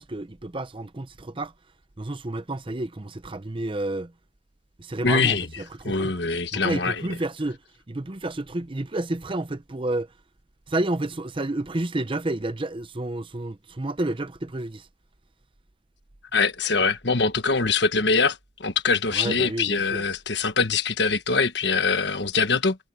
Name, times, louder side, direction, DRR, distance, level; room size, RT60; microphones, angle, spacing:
voice 1, 0.0-1.5 2.0-4.1 4.8-6.1 6.5-7.6 7.9-10.1 10.7-14.9 19.1-20.0, right 2 dB, 25° right, 0.7 m, -30 dB
voice 2, 5.0-5.5 5.8-7.0 16.3-22.8, left 4 dB, 60° left, 1.4 m, -23 dB
head